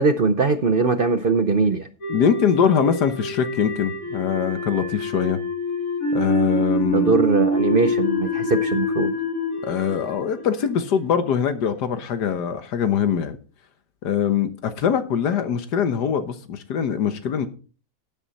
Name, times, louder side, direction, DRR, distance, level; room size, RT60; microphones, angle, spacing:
voice 1, 0.0-1.9 6.9-9.1, right 4 dB, 50° right, 0.6 m, -20 dB
sound 1, 2.0-11.2, left 1 dB, 60° left, 2.1 m, -26 dB
voice 2, 2.1-5.4 6.1-7.1 9.6-13.4 14.0-17.5, left 8 dB, 90° left, 1.7 m, -22 dB
11.5 x 9.3 x 4.1 m
omnidirectional pair, 1.7 m